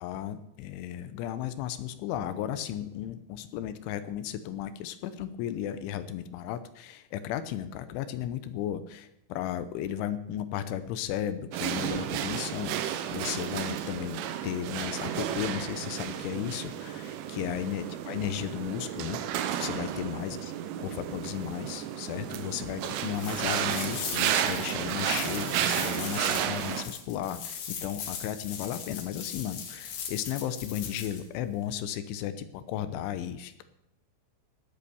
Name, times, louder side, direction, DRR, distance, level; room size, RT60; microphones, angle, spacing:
voice 1, 0.0-19.2 19.6-20.4 20.8-33.6, left 10 dB, 80° left, 12 dB, 3.1 m, -35 dB
sound 1, 11.5-26.8, right 10 dB, 85° right, 3.5 m, -32 dB
sound 2, 23.1-31.2, left 7 dB, 60° left, 3.5 m, -39 dB
18.0 x 8.2 x 6.9 m, 0.83 s
omnidirectional pair, 5.8 m